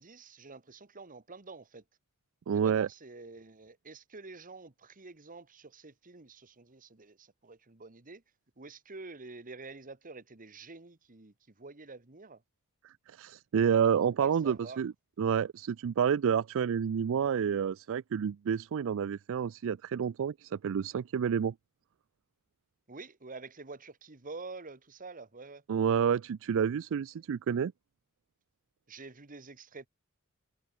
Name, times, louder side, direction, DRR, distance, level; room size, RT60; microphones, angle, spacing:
voice 1, 0.0-1.8 2.5-8.2 8.6-12.4 14.2-14.8 22.9-25.6 28.9-29.9, right 3 dB, 40° right, 1.6 m, -48 dB
voice 2, 2.5-2.9 12.8-14.9 15.2-21.5 25.7-27.7, right 7 dB, 60° right, 0.4 m, -29 dB
head